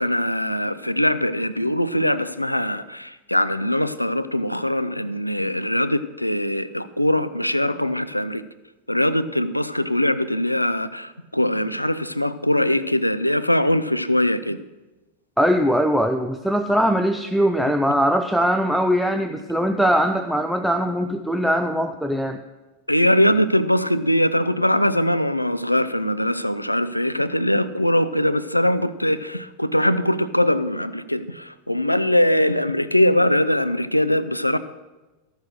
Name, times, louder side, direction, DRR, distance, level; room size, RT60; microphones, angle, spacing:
voice 1, 0.0-8.4 8.9-14.6 22.9-34.6, left 1 dB, 85° left, 0.4 m, -21 dB
voice 2, 15.4-22.4, equal, ahead, 0.5 m, -21 dB
13.5 x 6.4 x 6.6 m
figure-of-eight pair, 90°, 0 cm